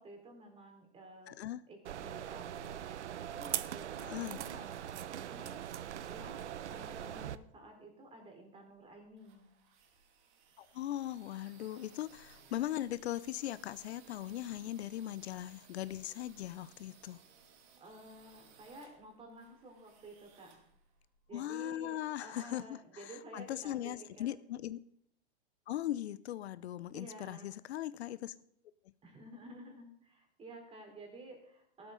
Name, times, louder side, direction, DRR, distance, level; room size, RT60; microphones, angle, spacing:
voice 1, 0.0-1.4 1.7-9.5 17.8-20.7 21.3-24.3 26.9-27.5 29.0-31.9, right 1 dB, 15° right, 3 dB, 3.9 m, -52 dB
voice 2, 1.3-1.6 4.0-4.4 10.6-17.2 21.3-22.8 23.3-24.8 25.7-28.3, left 13 dB, 70° left, 17 dB, 0.7 m, -39 dB
sound 1, 1.8-7.4, right 10 dB, 85° right, 0.8 m, -41 dB
sound 2, 8.8-21.5, right 6 dB, 35° right, 2.5 m, -62 dB
14.0 x 12.5 x 3.8 m, 0.70 s
hypercardioid pair, 135°, 34 cm